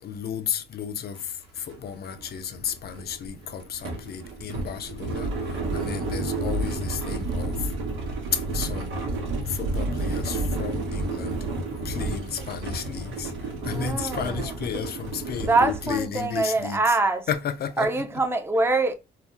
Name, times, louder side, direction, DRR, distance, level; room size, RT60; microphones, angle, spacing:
voice 1, 0.0-7.7 8.3-8.9 9.5-11.5 11.7-17.0 17.3-18.1, left 8 dB, 55° left, 0.5 m, -33 dB
sound 1, 1.2-1.3 1.6-16.3, right 2 dB, 90° right, 0.9 m, -31 dB
voice 2, 13.7-14.4 15.4-17.2 17.8-18.9, right 3 dB, 10° right, 0.5 m, -24 dB
2.7 x 2.0 x 3.4 m
cardioid pair, 90°, 20 cm